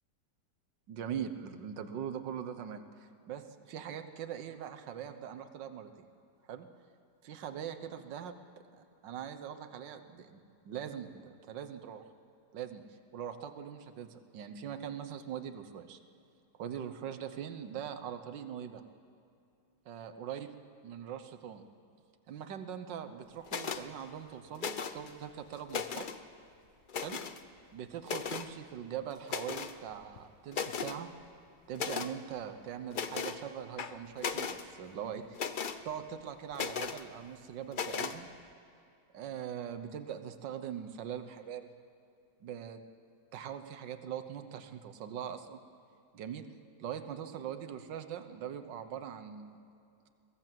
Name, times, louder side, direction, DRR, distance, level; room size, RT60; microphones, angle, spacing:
voice 1, 0.9-5.9 6.5-6.7 7.2-8.4 8.8-12.0 12.5-12.8 13.1-16.0 16.6-18.8 19.8-20.5 20.8-21.6 22.3-26.1 26.9-27.2 27.7-31.1 31.7-35.4 35.8-38.3 39.1-41.7 42.4-42.8 43.3-45.6 46.1-46.4 46.8-49.6, right 9 dB, 85° right, 8 dB, 1.7 m, -42 dB
sound 1, 23.5-23.8 24.6-25.1 25.5-26.2 26.9-27.4 28.0-28.5 29.3-29.8 30.2-30.3 30.5-31.0 31.7-32.1 32.9-33.4 33.8-34.6 35.3-35.8 36.5-37.0 37.7-38.2, left 6 dB, 60° left, 0.5 m, -36 dB
22.5 x 16.5 x 7.5 m, 2.5 s
omnidirectional pair, 1.9 m